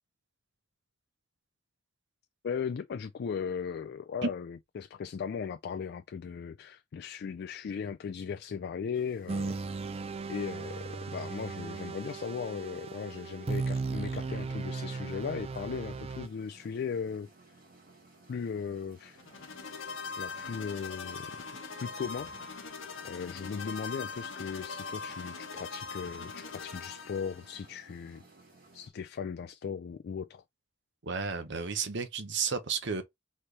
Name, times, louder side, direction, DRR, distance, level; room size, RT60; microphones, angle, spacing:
voice 1, 2.4-9.9 10.3-17.3 18.3-19.2 20.2-21.3 21.8-22.3 23.0-28.2 28.7-30.4, left 6 dB, 55° left, 0.3 m, -37 dB
sound 1, 8.9-28.9, right 3 dB, 50° right, 2.4 m, -58 dB
sound 2, 9.3-16.3, right 4 dB, 30° right, 0.4 m, -36 dB
sound 3, 19.2-27.7, left 4 dB, 85° left, 1.2 m, -41 dB
voice 2, 31.0-33.0, right 5 dB, 65° right, 0.9 m, -32 dB
4.3 x 3.2 x 3.3 m
head